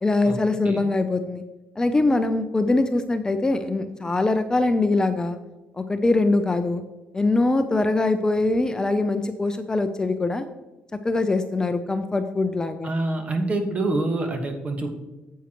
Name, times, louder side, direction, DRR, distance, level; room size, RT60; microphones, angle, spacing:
voice 1, 0.0-1.4 1.8-5.4 5.8-6.8 7.1-10.5 11.0-12.9, left 2 dB, 15° left, 8 dB, 0.5 m, -22 dB
voice 2, 12.8-14.9, right 2 dB, 35° right, 5 dB, 1.3 m, -26 dB
9.3 x 8.2 x 3.0 m, 1.1 s
cardioid pair, 105°, 4 cm